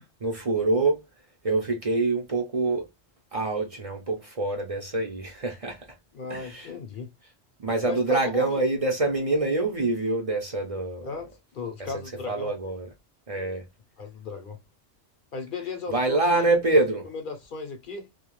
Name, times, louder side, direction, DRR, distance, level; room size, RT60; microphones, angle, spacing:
voice 1, 0.2-1.0 1.4-2.9 3.3-5.9 6.3-6.7 7.6-11.1 12.3-12.9 13.3-13.6 15.9-17.0, right 2 dB, 40° right, 0.5 m, -25 dB
voice 2, 6.1-7.1 7.9-8.6 11.0-11.3 11.5-12.5 14.0-14.6 15.3-16.5 17.1-18.1, left 5 dB, 55° left, 0.7 m, -35 dB
2.3 x 2.3 x 2.9 m
omnidirectional pair, 1.2 m